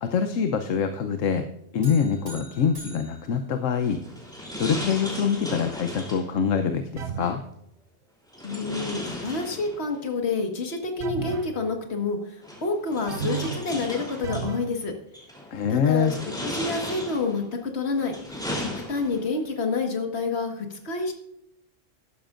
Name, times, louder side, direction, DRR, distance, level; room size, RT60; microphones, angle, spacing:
voice 1, 0.0-1.5 1.7-4.0 4.6-7.4 15.5-16.1, left 6 dB, 80° left, 7 dB, 1.1 m, -25 dB
sound 1, 1.8-4.3, right 1 dB, 30° right, 4.6 m, -46 dB
sound 2, 3.8-6.3 8.3-10.0 11.3-11.4 12.4-14.5 15.1-15.5 16.0-17.4 17.9-19.3, equal, 5° left, 3.2 m, -36 dB
sound 3, 7.0-7.5 11.0-11.6 13.1-13.7 14.2-14.8, right 6 dB, 65° right, 1.1 m, -33 dB
voice 2, 8.4-14.9 15.7-21.1, left 3 dB, 55° left, 4 dB, 1.9 m, -28 dB
14.0 x 12.0 x 2.5 m, 0.80 s
omnidirectional pair, 1.3 m